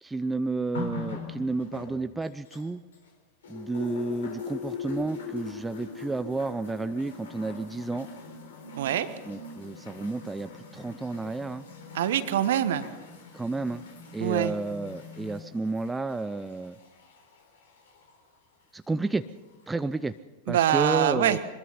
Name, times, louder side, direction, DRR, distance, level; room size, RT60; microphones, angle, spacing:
voice 1, 0.0-2.8 3.5-8.1 9.3-11.7 13.3-13.8 14.1-16.8 18.7-19.2 19.7-20.1 20.5-21.4, right 3 dB, 10° right, 11 dB, 0.6 m, -31 dB
sound 1, 0.7-3.1 3.4-18.2 19.0-19.1, left 4 dB, 65° left, 3.9 m, -42 dB
voice 2, 8.8-9.1 11.9-12.9 14.2-14.5 20.5-21.4, right 11 dB, 60° right, 12 dB, 1.4 m, -24 dB
23.5 x 21.5 x 5.7 m, 1.1 s
figure-of-eight pair, 90°, 0 cm